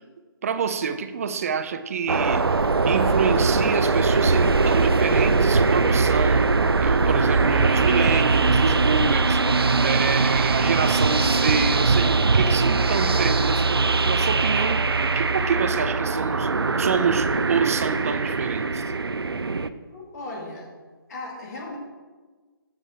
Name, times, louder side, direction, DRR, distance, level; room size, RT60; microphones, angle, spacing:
voice 1, 0.4-16.5 16.8-18.8, right 6 dB, 40° right, 10 dB, 0.5 m, -27 dB
sound 1, 2.1-19.7, right 4 dB, 85° right, 0.5 m, -21 dB
voice 2, 19.9-20.7 21.1-21.8, left 2 dB, 45° left, -3 dB, 2.0 m, -36 dB
7.4 x 6.1 x 4.9 m, 1.4 s
figure-of-eight pair, 145°, 12 cm